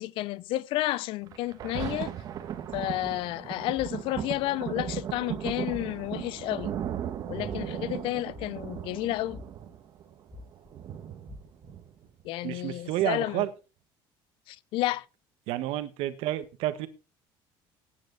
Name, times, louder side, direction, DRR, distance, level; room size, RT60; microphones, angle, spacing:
voice 1, 0.0-2.1 2.7-6.8 7.3-9.4 12.2-13.5 14.5-15.1, left 16 dB, 60° left, 0.7 m, -31 dB
Thunder, 1.3-12.3 12.9-13.0, right 10 dB, 40° right, 1.6 m, -37 dB
sound 1, 2.7-3.2 3.8-4.2 4.8-5.2 5.6-6.1 6.6-7.0 7.4-7.9 8.3-8.9 9.3-9.7 10.3-10.7 11.3-11.7, left 2 dB, 10° right, 2.7 m, -45 dB
voice 2, 12.4-13.5 15.5-16.9, right 14 dB, 70° right, 1.5 m, -30 dB
14.5 x 9.8 x 4.1 m
cardioid pair, 170°, 10 cm